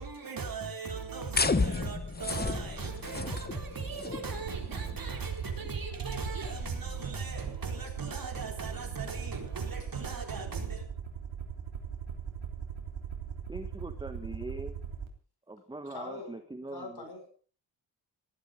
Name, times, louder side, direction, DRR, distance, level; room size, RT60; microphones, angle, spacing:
voice 1, 0.0-10.9, right 4 dB, 45° right, 4.1 m, -38 dB
sound 1, 1.3-7.4, left 4 dB, 20° left, 1.0 m, -34 dB
Aircraft, 4.4-15.1, right 7 dB, 75° right, 3.5 m, -40 dB
voice 2, 13.5-14.8 15.5-17.1, right 2 dB, 10° right, 1.2 m, -42 dB
voice 3, 15.9-16.4 16.7-17.3, left 3 dB, 50° left, 5.8 m, -42 dB
18.5 x 13.0 x 5.2 m
wide cardioid pair, 120°, 46 cm